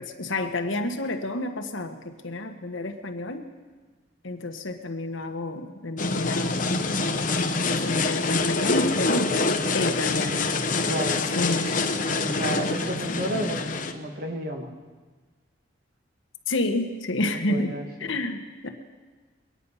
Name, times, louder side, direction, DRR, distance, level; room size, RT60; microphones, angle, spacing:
voice 1, 0.0-3.5 4.2-6.6 7.6-9.4 9.7-10.5 11.3-11.7 13.1-13.4 16.5-17.8 18.1-18.7, left 2 dB, 75° left, 6 dB, 1.2 m, -29 dB
sound 1, 6.0-13.9, left 3 dB, 40° left, 0.9 m, -25 dB
voice 2, 10.9-11.3 12.2-13.7 13.9-14.7 17.5-18.2, right 1 dB, 45° right, 3 dB, 1.7 m, -32 dB
23.0 x 9.6 x 5.5 m, 1.4 s
head